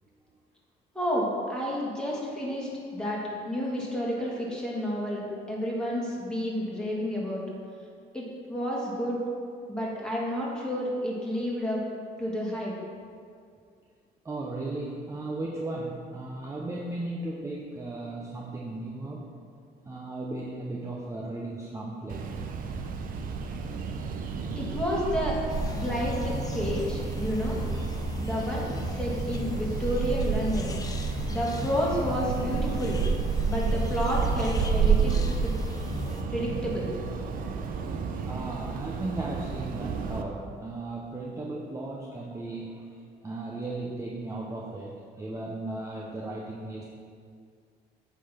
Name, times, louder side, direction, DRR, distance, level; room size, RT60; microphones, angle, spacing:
voice 1, 0.9-3.2 3.5-7.4 8.1-9.2 9.7-11.8 12.2-12.7 24.6-25.4 25.7-27.6 28.2-30.7 31.3-33.0 33.4-35.2 36.3-36.9, equal, 5° left, -5 dB, 2.0 m, -30 dB
voice 2, 14.2-19.3 19.9-22.5 38.3-42.9 43.2-46.8, right 2 dB, 15° right, -2 dB, 0.7 m, -36 dB
sound 1, 22.1-40.2, right 5 dB, 55° right, 0.7 m, -30 dB
sound 2, 25.5-36.2, left 2 dB, 20° left, 0.6 m, -36 dB
8.2 x 3.9 x 5.8 m, 2.3 s
cardioid pair, 110°, 17 cm